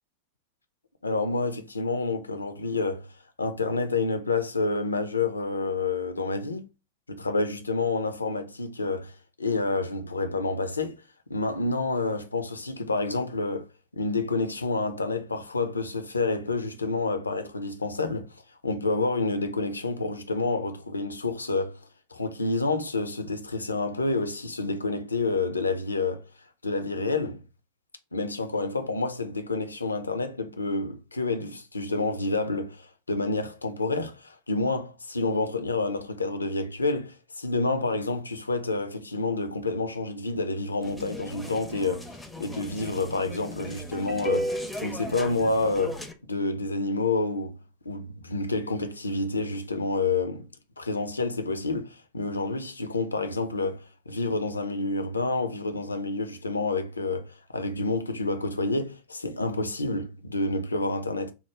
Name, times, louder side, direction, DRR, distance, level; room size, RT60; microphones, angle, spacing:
voice 1, 1.0-3.1 3.4-6.6 7.1-11.0 11.3-13.7 13.9-18.4 18.6-21.8 22.1-26.3 26.6-27.4 28.1-42.1 42.4-46.0 46.3-47.6 47.9-50.5 50.8-61.3, left 3 dB, 80° left, 0.4 m, -28 dB
sound 1, 40.8-46.1, equal, 5° left, 0.4 m, -35 dB
2.9 x 2.0 x 3.3 m
figure-of-eight pair, 90°, 0 cm